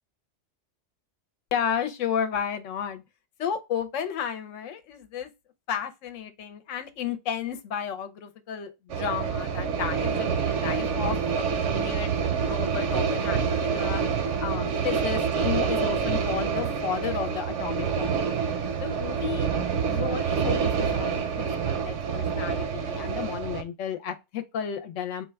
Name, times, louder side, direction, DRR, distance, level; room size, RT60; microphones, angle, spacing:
voice 1, 1.5-3.0 3.4-5.3 5.7-12.1 12.5-14.0 14.4-18.3 18.8-19.5 19.9-25.2, left 8 dB, 90° left, 1.0 m, -33 dB
sound 1, 8.9-23.6, right 6 dB, 75° right, 1.0 m, -27 dB
4.2 x 2.2 x 3.3 m
omnidirectional pair, 1.3 m